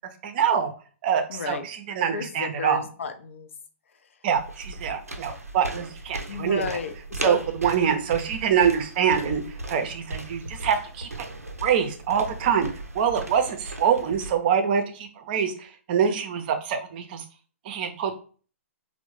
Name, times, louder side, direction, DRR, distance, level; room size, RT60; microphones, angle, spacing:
voice 1, 0.2-0.7 1.0-2.8 4.2-6.6 7.2-9.4 9.7-11.1 11.6-12.7 12.9-17.2 17.7-18.2, right 7 dB, 40° right, 6 dB, 0.5 m, -25 dB
voice 2, 1.3-1.6 2.1-3.5 6.3-6.9 7.2-7.4, left 5 dB, 60° left, 8 dB, 0.5 m, -32 dB
sound 1, 4.3-14.3, right 2 dB, 90° right, 0.5 m, -37 dB
3.3 x 2.1 x 3.0 m, 0.39 s
figure-of-eight pair, 120°, 8 cm